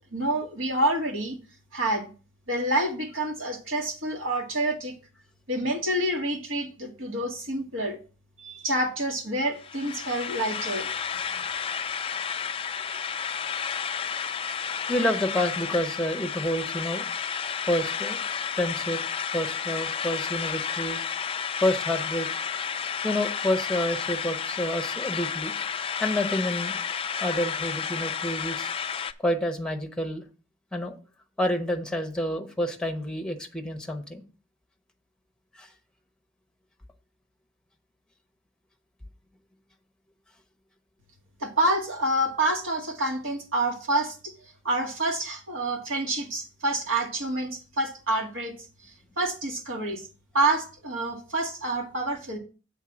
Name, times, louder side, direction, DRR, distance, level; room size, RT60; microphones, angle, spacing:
voice 1, 0.1-1.4 1.7-2.1 2.5-4.9 5.5-8.0 8.4-10.9 41.4-44.3 44.6-48.5 49.2-50.0 50.3-52.4, right 1 dB, 70° right, 2 dB, 2.0 m, -27 dB
sound 1, 9.6-29.1, left 7 dB, 25° left, 0.3 m, -31 dB
voice 2, 14.9-17.1 17.7-18.2 18.6-19.0 19.3-21.0 21.6-22.3 23.0-25.5 26.0-26.8 27.2-28.7 29.2-30.2 30.7-31.0 31.4-34.2 35.5-35.7, left 1 dB, 5° left, 4 dB, 0.9 m, -28 dB
8.1 x 4.0 x 6.1 m, 0.36 s
head